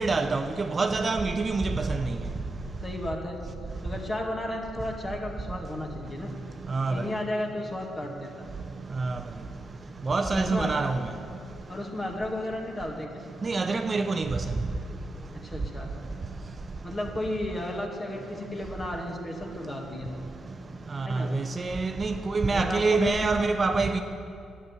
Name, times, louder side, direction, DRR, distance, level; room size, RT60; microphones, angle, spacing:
voice 1, 0.0-2.2 6.7-7.1 9.0-9.2 10.1-11.0 13.4-14.4 20.9-24.0, right 3 dB, 35° right, 0.5 m, -26 dB
voice 2, 2.8-3.4 3.8-6.3 6.9-8.5 10.2-10.7 11.7-13.2 15.3-15.9 16.8-20.1 21.0-21.3 22.5-23.5, left 1 dB, 25° left, 1.9 m, -33 dB
10.5 x 7.0 x 8.1 m
cardioid pair, 90°, 0 cm